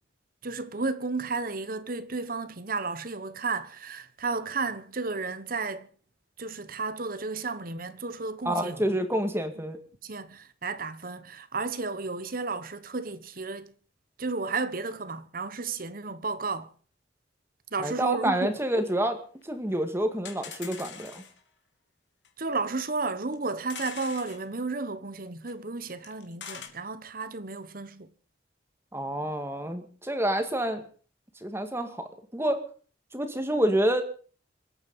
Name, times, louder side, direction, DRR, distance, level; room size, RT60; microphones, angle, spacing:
voice 1, 0.4-5.9 6.4-9.0 10.0-13.7 14.2-16.7 17.7-18.5 22.4-28.1, right 3 dB, 50° right, 1.2 m, -33 dB
voice 2, 8.4-9.8 17.8-19.2 19.4-21.2 28.9-30.9 31.4-32.6 33.1-34.0, right 1 dB, 15° right, 2.0 m, -28 dB
sound 1, 18.2-18.3 18.5-18.6 18.8-18.9 19.4-19.5 19.7-19.8 20.3-21.4 22.2-22.3 22.6-22.7 23.2-24.4 25.5-25.6 25.8-26.7, left 7 dB, 70° left, 3.3 m, -42 dB
26.5 x 9.0 x 5.5 m
head